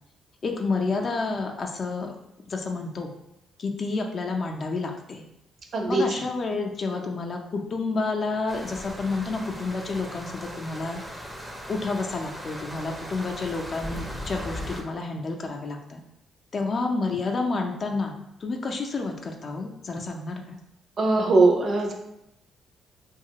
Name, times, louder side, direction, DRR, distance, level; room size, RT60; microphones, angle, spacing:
voice 1, 0.4-2.1 2.5-3.1 3.6-5.2 5.9-11.3 11.7-16.0 16.5-18.1 18.4-20.6, left 3 dB, 45° left, 2 dB, 0.4 m, -30 dB
voice 2, 5.7-6.0 21.0-21.9, right 3 dB, 55° right, 1 dB, 0.6 m, -20 dB
sound 1, 8.5-14.8, equal, 5° right, 0.5 m, -38 dB
2.8 x 2.3 x 2.8 m, 0.83 s
cardioid pair, 90°, 0 cm